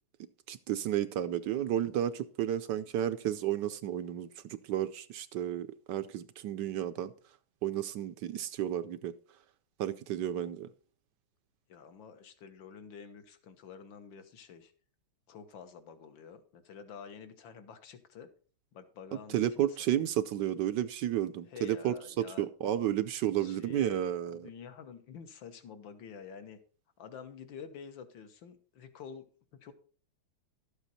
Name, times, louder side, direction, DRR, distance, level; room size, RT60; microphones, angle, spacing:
voice 1, 0.5-7.1 7.6-9.1 9.8-10.7 19.3-24.5, right 11 dB, 70° right, 1.1 m, -32 dB
voice 2, 10.2-10.5 11.7-14.7 15.3-18.3 18.7-19.8 21.5-22.5 23.4-24.0 24.3-26.6 27.0-29.7, left 6 dB, 65° left, 2.0 m, -49 dB
12.5 x 8.1 x 4.2 m
omnidirectional pair, 2.3 m